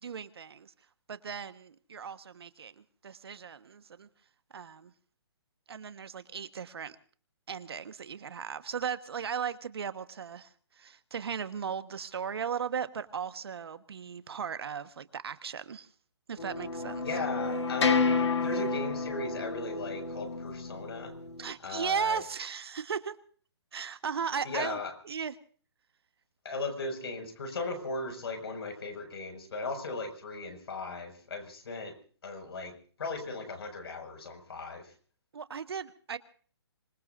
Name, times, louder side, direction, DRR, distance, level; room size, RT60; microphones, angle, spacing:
voice 1, 0.0-0.7 1.1-4.1 4.5-4.9 5.7-7.0 7.5-15.9 16.3-17.0 21.4-23.1 23.7-24.8 25.0-25.3 35.3-36.2, right 7 dB, 65° right, 11 dB, 1.3 m, -36 dB
sound 1, 16.4-21.5, left 4 dB, 85° left, 1.9 m, -30 dB
voice 2, 17.0-21.1 21.6-22.2 24.4-24.9 26.4-32.0 32.2-32.7 33.0-34.9, left 3 dB, 65° left, 6 dB, 5.9 m, -37 dB
26.0 x 20.5 x 2.6 m, 0.43 s
hypercardioid pair, 160°, 14 cm